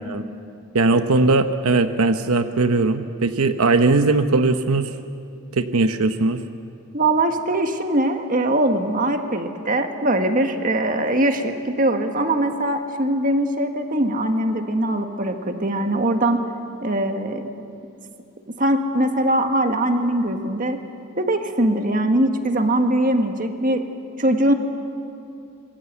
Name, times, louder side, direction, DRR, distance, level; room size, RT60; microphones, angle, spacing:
voice 1, 0.7-4.9 5.5-6.4, right 3 dB, 85° right, 8 dB, 0.9 m, -19 dB
voice 2, 6.9-16.4 16.8-17.5 18.5-20.8 21.2-23.9 24.2-24.5, right 1 dB, 40° right, 5 dB, 1.7 m, -21 dB
26.5 x 22.5 x 8.2 m, 2.5 s
head